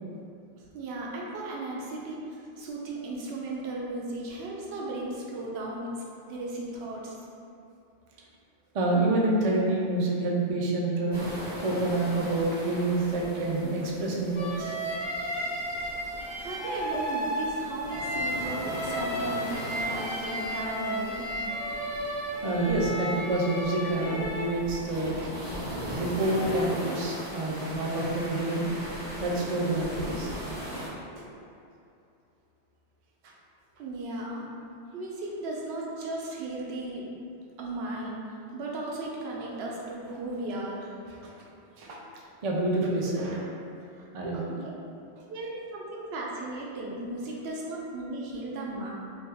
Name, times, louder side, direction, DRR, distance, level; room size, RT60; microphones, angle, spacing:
voice 1, 0.7-5.9 6.3-7.1 16.4-21.4 33.8-34.5 34.9-37.1 37.6-40.9 43.9-44.1 44.3-44.7 45.3-48.9, right 2 dB, 80° right, -3 dB, 0.8 m, -36 dB
voice 2, 8.7-11.2 11.6-14.7 22.4-25.3 25.9-28.7 29.2-30.3 31.2-31.3 41.1-41.3 41.8-42.0 42.4-43.5 44.1-44.6, right 2 dB, 55° right, -3 dB, 0.4 m, -28 dB
sound 1, 11.1-30.9, equal, 25° left, 0.8 m, -39 dB
sound 2, 14.3-24.5, equal, 60° left, 0.9 m, -33 dB
3.4 x 2.2 x 2.8 m, 2.6 s
omnidirectional pair, 1.1 m